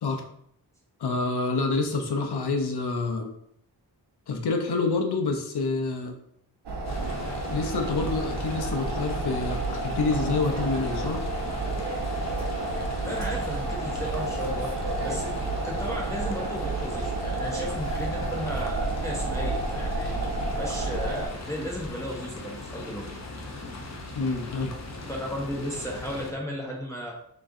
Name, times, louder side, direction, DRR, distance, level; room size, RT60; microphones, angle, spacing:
voice 1, 1.0-3.3 4.3-6.1 7.5-11.2 24.1-24.8, left 3 dB, 80° left, 3 dB, 0.8 m, -27 dB
sound 1, 6.7-21.3, right 2 dB, 90° right, 1.0 m, -30 dB
sound 2, 6.8-26.3, left 2 dB, 45° left, 0.7 m, -39 dB
voice 2, 13.0-15.3 15.6-23.1 25.1-27.1, equal, 10° left, -4 dB, 0.8 m, -35 dB
6.0 x 3.0 x 2.6 m, 0.70 s
wide cardioid pair, 155°, 39 cm